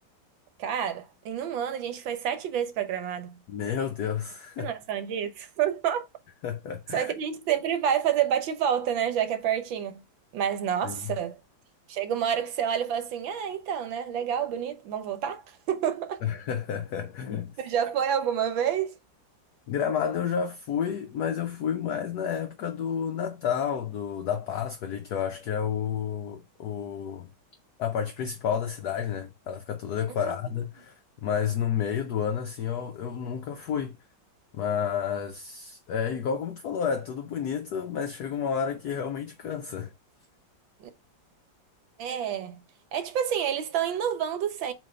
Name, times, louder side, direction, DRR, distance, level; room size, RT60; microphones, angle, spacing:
voice 1, 0.6-3.4 4.6-6.1 6.9-10.0 10.3-11.4 11.9-16.2 17.6-19.0 30.2-30.3 40.8-40.9 42.0-42.6 42.9-44.7, right 9 dB, 85° right, 1.7 m, -28 dB
voice 2, 3.5-4.7 6.4-7.1 10.8-11.2 16.2-17.6 19.7-27.3 27.8-34.0 34.5-39.9, left 8 dB, 65° left, 1.1 m, -30 dB
7.7 x 2.7 x 4.9 m
omnidirectional pair, 2.1 m